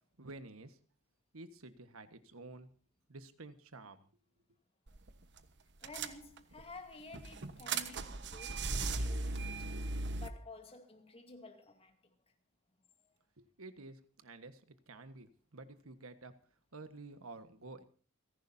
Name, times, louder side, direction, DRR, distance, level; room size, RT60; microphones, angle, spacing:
voice 1, 0.2-0.8 1.3-2.7 3.1-4.0 13.4-14.6 14.9-16.3 16.7-17.8, right 3 dB, 80° right, 1.5 m, -51 dB
sound 1, 4.9-5.1 5.4-5.5 5.8-6.6 7.1-10.3, right 3 dB, 55° right, 1.2 m, -37 dB
voice 2, 5.8-8.6 9.0-9.7 10.2-12.0, left 3 dB, 30° left, 2.5 m, -52 dB
29.0 x 11.5 x 2.8 m
head